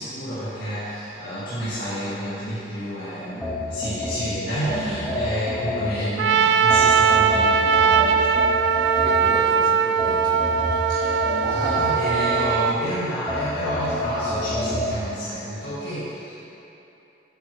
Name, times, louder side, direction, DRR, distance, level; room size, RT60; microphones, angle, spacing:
voice 1, 0.0-8.3 10.9-16.3, equal, 80° left, -12 dB, 1.7 m, -29 dB
sound 1, 3.4-6.2 6.7-9.5 10.0-12.8 13.3-14.9, left 1 dB, 5° left, 1.4 m, -29 dB
Trumpet, 6.2-12.8, right 7 dB, 80° right, 0.3 m, -20 dB
voice 2, 9.0-11.0, right 1 dB, 50° right, -2 dB, 0.9 m, -35 dB
9.0 x 6.2 x 3.1 m, 2.9 s
head